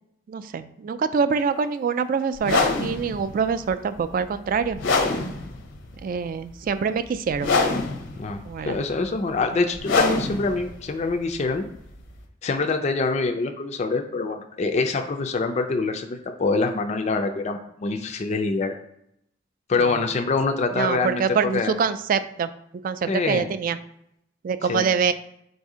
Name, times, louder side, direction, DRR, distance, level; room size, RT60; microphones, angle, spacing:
voice 1, 0.3-4.8 6.0-7.5 8.4-8.8 9.5-9.7 19.8-20.0 20.7-22.5 22.8-23.8 24.4-25.1, right 6 dB, 45° right, 12 dB, 0.3 m, -25 dB
sound 1, 2.4-12.2, left 3 dB, 75° left, 0.7 m, -26 dB
voice 2, 8.2-11.6 12.4-18.7 19.7-21.7 23.1-23.5 24.7-24.9, left 3 dB, 35° left, 5 dB, 0.4 m, -25 dB
4.1 x 2.7 x 4.8 m, 0.77 s
head